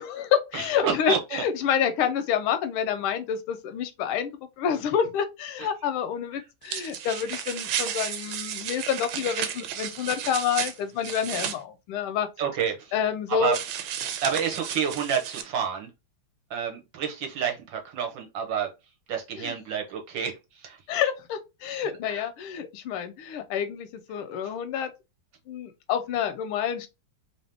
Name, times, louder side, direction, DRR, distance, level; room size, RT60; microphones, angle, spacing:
voice 1, 0.0-12.3 12.9-13.6 19.4-19.5 20.9-24.9 25.5-26.9, left 8 dB, 85° left, 1.5 m, -28 dB
voice 2, 0.5-1.4 12.4-12.9 13.3-13.6 14.2-15.9 16.5-18.7 19.1-20.8 22.1-22.2, right 7 dB, 65° right, 1.4 m, -29 dB
sound 1, 6.6-11.6 13.5-15.4, right 9 dB, 85° right, 1.5 m, -33 dB
3.5 x 2.8 x 3.3 m
omnidirectional pair, 2.4 m